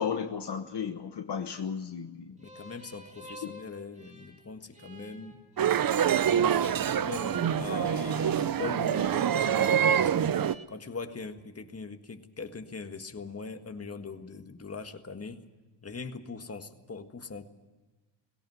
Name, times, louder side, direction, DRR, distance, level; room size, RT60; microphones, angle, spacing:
voice 1, 0.0-2.3 3.4-3.5 6.6-6.7, left 7 dB, 55° left, 6 dB, 1.2 m, -34 dB
voice 2, 2.4-5.4 6.0-10.3 10.7-15.5 15.8-17.5, left 4 dB, 30° left, 6 dB, 1.7 m, -41 dB
sound 1, 2.4-10.6, equal, 15° right, 2.9 m, -49 dB
sound 2, 5.6-10.5, right 9 dB, 45° right, 0.7 m, -26 dB
18.5 x 17.5 x 9.5 m, 1.3 s
cardioid pair, 85°, 48 cm